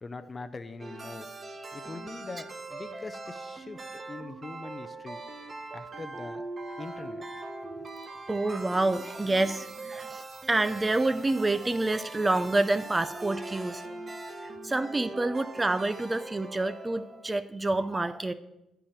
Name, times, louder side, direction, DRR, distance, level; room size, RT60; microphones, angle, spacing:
voice 1, 0.0-1.3 1.7-5.2 5.7-6.4 6.8-7.2, left 3 dB, 30° left, 11 dB, 0.5 m, -42 dB
sound 1, 0.8-17.4, right 2 dB, 35° right, 1.0 m, -41 dB
voice 2, 8.3-13.9 14.4-18.3, right 2 dB, 20° right, 11 dB, 0.4 m, -28 dB
8.7 x 4.9 x 7.3 m, 0.92 s
cardioid pair, 90°, 0 cm